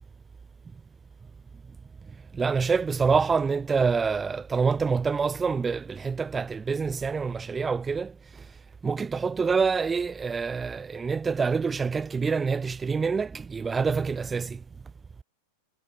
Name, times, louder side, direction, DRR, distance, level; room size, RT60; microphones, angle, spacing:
voice 1, 2.3-8.5 8.8-14.6, right 5 dB, 15° right, 0.5 m, -26 dB
figure-of-eight pair, 90°, 0 cm